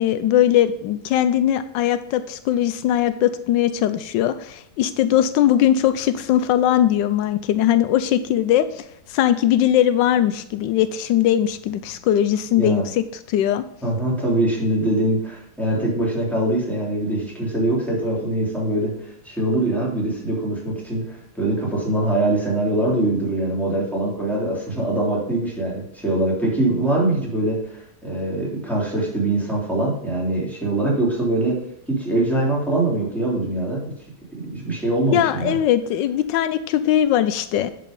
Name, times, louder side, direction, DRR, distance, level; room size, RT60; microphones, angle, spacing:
voice 1, 0.0-13.6 35.1-37.7, left 11 dB, 85° left, 12 dB, 1.3 m, -20 dB
voice 2, 13.8-31.6 31.9-33.9 34.5-35.6, right 1 dB, ahead, -5 dB, 3.3 m, -23 dB
11.0 x 5.3 x 5.3 m, 0.76 s
omnidirectional pair, 1.9 m